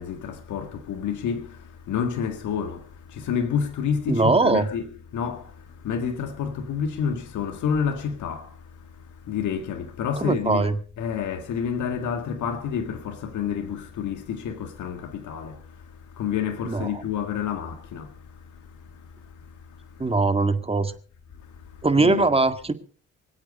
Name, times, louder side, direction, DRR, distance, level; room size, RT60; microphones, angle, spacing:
voice 1, 0.0-1.6 1.9-2.8 3.1-4.9 5.1-5.5 5.8-8.5 9.3-10.7 11.0-15.6 16.2-18.1 22.0-22.3, left 7 dB, 75° left, 1.9 m, -28 dB
voice 2, 4.1-4.7 10.2-10.8 16.7-17.0 20.0-20.9 21.8-22.7, right 3 dB, 20° right, 1.8 m, -21 dB
25.0 x 8.5 x 5.4 m
cardioid pair, 90°, 30 cm